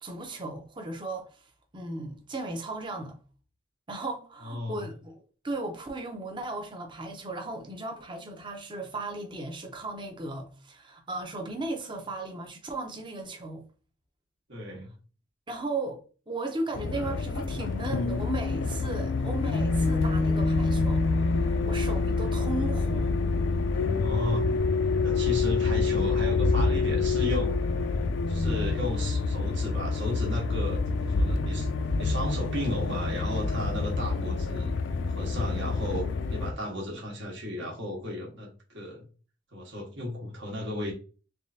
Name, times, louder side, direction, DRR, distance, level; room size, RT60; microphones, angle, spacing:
voice 1, 0.0-1.3 1.7-3.2 3.9-13.6 15.5-16.0 16.3-23.2, right 2 dB, 25° right, 0.7 m, -36 dB
voice 2, 4.4-4.9 14.5-14.9 23.9-24.5 25.0-28.0 28.3-31.7 32.0-34.7 35.1-39.0 39.5-40.9, left 1 dB, 65° right, 1.3 m, -34 dB
sound 1, 16.7-36.5, left 3 dB, 65° left, 0.4 m, -27 dB
3.5 x 3.2 x 2.7 m
head